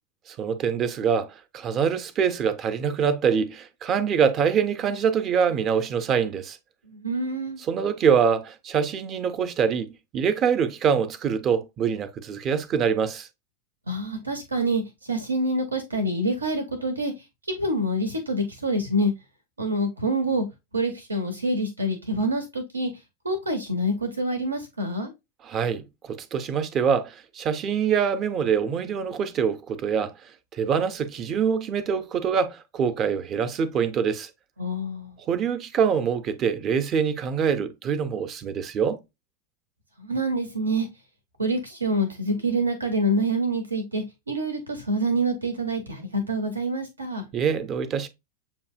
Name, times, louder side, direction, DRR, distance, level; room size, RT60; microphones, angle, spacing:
voice 1, 0.3-6.6 7.7-13.3 25.4-30.1 30.5-34.3 35.3-39.0 47.3-48.1, right 7 dB, 30° right, 0.5 m, -24 dB
voice 2, 6.9-7.6 13.9-17.1 17.5-19.1 19.6-20.5 20.7-22.9 23.2-25.1 34.6-35.2 40.0-40.9 41.4-47.3, right 1 dB, 80° right, 0.7 m, -26 dB
7.0 x 2.7 x 2.3 m
figure-of-eight pair, 90°, 0 cm